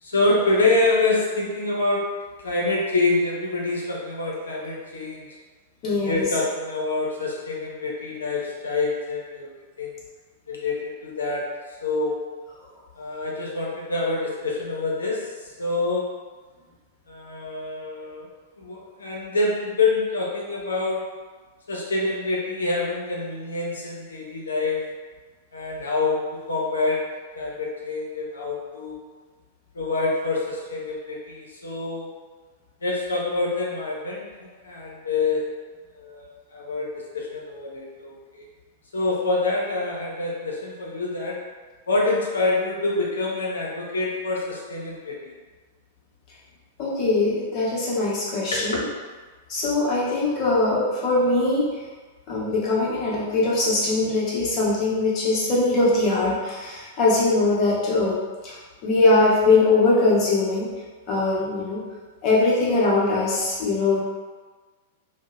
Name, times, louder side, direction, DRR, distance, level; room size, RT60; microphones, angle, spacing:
voice 1, 0.0-5.3 5.8-9.5 9.8-9.9 10.5-11.5 11.8-12.2 13.0-16.2 17.1-18.3 18.6-21.1 21.7-25.0 25.5-29.0 29.7-32.1 32.8-35.5 35.9-38.5 38.9-41.5 41.9-45.3 48.5-48.8, left 3 dB, 85° left, -3 dB, 0.6 m, -26 dB
voice 2, 5.8-6.2 46.8-48.8 49.5-51.7 52.3-58.5 58.8-60.7 61.1-61.8 62.2-64.0, left 2 dB, 40° left, -6 dB, 0.8 m, -21 dB
2.6 x 2.0 x 2.3 m, 1.4 s
hypercardioid pair, 105°, 0 cm